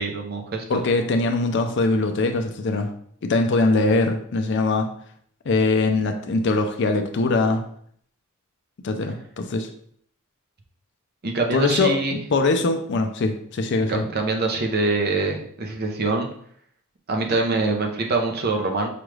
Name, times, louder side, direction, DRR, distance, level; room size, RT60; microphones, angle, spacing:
voice 1, 0.0-0.8 11.2-12.2 13.9-16.3 17.1-18.9, right 3 dB, 45° right, 2 dB, 0.6 m, -24 dB
voice 2, 0.7-2.9 3.2-4.9 5.5-7.6 8.8-9.7 11.5-14.0, left 3 dB, 55° left, 6 dB, 0.4 m, -22 dB
5.0 x 2.3 x 3.2 m, 0.62 s
head